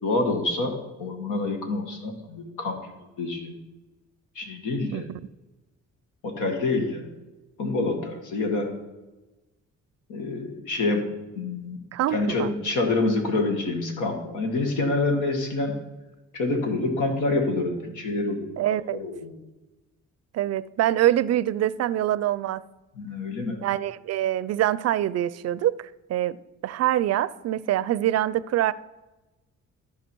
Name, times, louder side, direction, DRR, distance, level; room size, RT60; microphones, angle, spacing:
voice 1, 0.0-2.8 3.2-3.6 4.4-5.0 6.2-7.1 7.6-8.7 10.1-11.8 12.1-15.8 16.3-18.5 18.9-19.4 23.0-23.6, left 2 dB, 80° left, 1.9 m, -27 dB
voice 2, 11.9-12.5 18.6-19.0 20.3-22.6 23.6-26.4 26.6-28.7, right 13 dB, 60° right, 0.5 m, -25 dB
14.0 x 4.9 x 4.6 m
cardioid pair, 90°, 30 cm